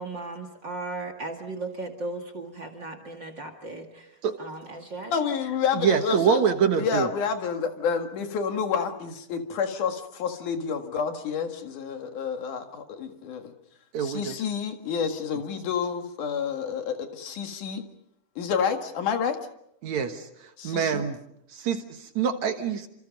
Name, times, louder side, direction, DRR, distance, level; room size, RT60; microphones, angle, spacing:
voice 1, 0.0-5.1, right 2 dB, 35° right, 8 dB, 2.5 m, -36 dB
voice 2, 5.1-6.4 6.8-13.5 14.0-17.8 18.4-19.4 20.6-21.0, left 6 dB, 70° left, 5 dB, 3.4 m, -29 dB
voice 3, 5.7-7.1 13.9-14.4 19.8-20.3 20.6-21.2 21.5-22.9, right 7 dB, 65° right, 6 dB, 2.6 m, -25 dB
29.0 x 27.5 x 5.3 m, 0.77 s
omnidirectional pair, 3.7 m